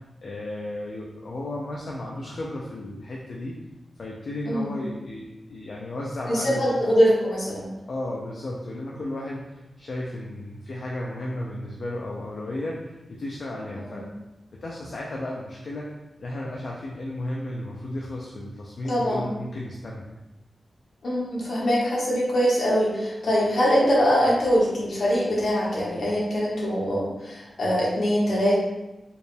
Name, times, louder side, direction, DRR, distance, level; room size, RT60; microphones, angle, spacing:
voice 1, 0.2-3.6 4.0-6.7 7.9-14.1 14.6-15.9 16.2-20.1, left 1 dB, 55° left, -3 dB, 0.5 m, -34 dB
voice 2, 4.4-4.8 6.3-7.7 13.9-14.0 18.8-19.3 21.0-28.6, equal, 70° left, -6 dB, 1.4 m, -23 dB
4.6 x 3.3 x 2.3 m, 0.98 s
wide cardioid pair, 160°, 0 cm